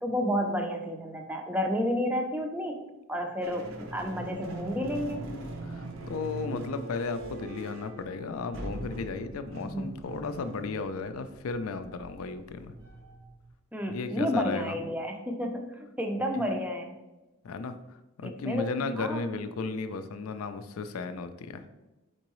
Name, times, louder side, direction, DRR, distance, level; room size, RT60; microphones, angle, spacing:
voice 1, 0.0-5.3 9.7-9.9 13.7-17.0 18.2-18.6 19.0-19.2, equal, 5° right, 3 dB, 0.4 m, -31 dB
sound 1, 3.4-13.5, right 2 dB, 70° right, 0.7 m, -42 dB
voice 2, 5.6-12.7 13.9-14.8 17.4-17.8 18.2-21.7, left 4 dB, 80° left, 10 dB, 0.4 m, -34 dB
4.5 x 3.8 x 3.0 m, 1.1 s
head